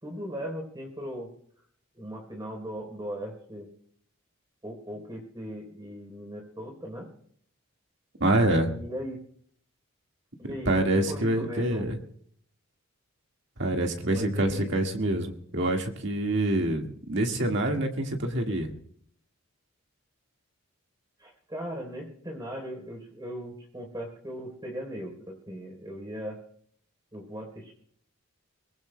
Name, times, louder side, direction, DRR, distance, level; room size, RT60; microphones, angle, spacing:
voice 1, 0.0-1.3 1.9-3.7 4.6-7.1 8.3-9.2 10.4-11.8 14.1-14.7 21.2-26.4 27.1-27.7, equal, 20° right, 1 dB, 3.8 m, -38 dB
voice 2, 8.2-8.7 10.7-12.0 13.6-18.7, right 1 dB, 55° right, 3 dB, 1.8 m, -26 dB
23.0 x 19.5 x 2.2 m, 0.63 s
head